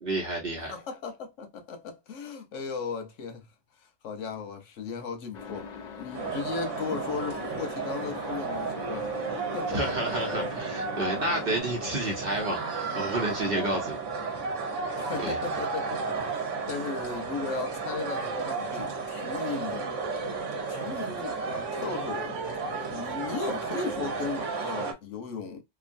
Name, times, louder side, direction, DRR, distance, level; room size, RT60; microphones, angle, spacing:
voice 1, 0.0-0.7 9.7-14.0 15.2-15.4, right 1 dB, 55° right, 1.1 m, -30 dB
voice 2, 0.7-3.4 4.0-5.7 6.0-9.1 9.5-9.8 11.3-11.5 15.0-19.9 20.7-22.4 22.7-25.6, left 5 dB, 90° left, 1.2 m, -36 dB
sound 1, 5.3-11.6, left 5 dB, 55° left, 0.5 m, -42 dB
sound 2, 6.1-24.9, right 4 dB, 85° right, 1.2 m, -33 dB
3.0 x 2.3 x 2.5 m
omnidirectional pair, 1.2 m